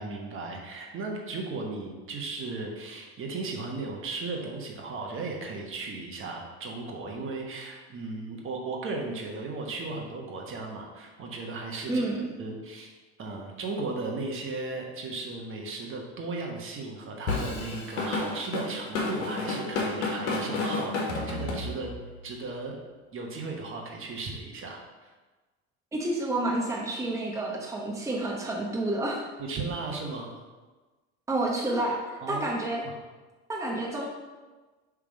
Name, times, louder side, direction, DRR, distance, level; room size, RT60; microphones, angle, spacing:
voice 1, 0.0-12.0 12.4-12.9 13.2-21.9 22.2-22.7 23.1-25.1 29.4-30.3 32.2-32.4, right 3 dB, 40° right, 0 dB, 1.1 m, -36 dB
voice 2, 11.9-12.2 25.9-29.2 31.3-32.8 33.5-34.1, right 2 dB, 10° right, -3 dB, 0.9 m, -29 dB
Drum kit / Drum, 17.3-22.1, left 3 dB, 90° left, 1.3 m, -30 dB
5.2 x 3.6 x 5.1 m, 1.3 s
supercardioid pair, 105°, 32 cm